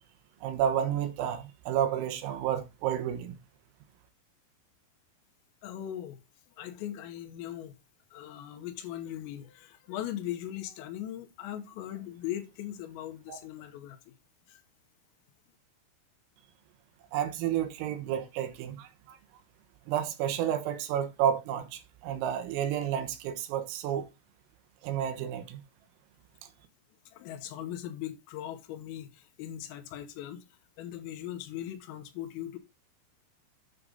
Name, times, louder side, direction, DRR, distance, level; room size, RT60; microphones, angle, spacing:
voice 1, 0.4-3.4 13.3-13.4 17.1-19.2 19.9-24.1 24.8-25.6, right 10 dB, 90° right, 3.8 m, -31 dB
voice 2, 5.6-6.2 6.6-7.8 8.1-14.1 14.5-14.6 27.1-30.4 30.8-32.6, left 12 dB, 85° left, 3.8 m, -39 dB
9.6 x 6.1 x 3.9 m
omnidirectional pair, 5.9 m